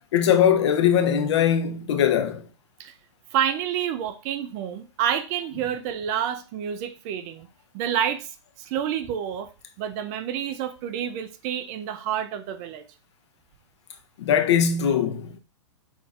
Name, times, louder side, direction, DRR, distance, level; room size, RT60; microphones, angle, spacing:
voice 1, 0.1-2.4 14.2-15.4, left 8 dB, 65° left, 0.7 m, -21 dB
voice 2, 3.3-7.5 7.7-9.5 9.8-12.8, right 9 dB, 35° right, 0.4 m, -28 dB
5.2 x 2.6 x 2.4 m
hypercardioid pair, 130°, 16 cm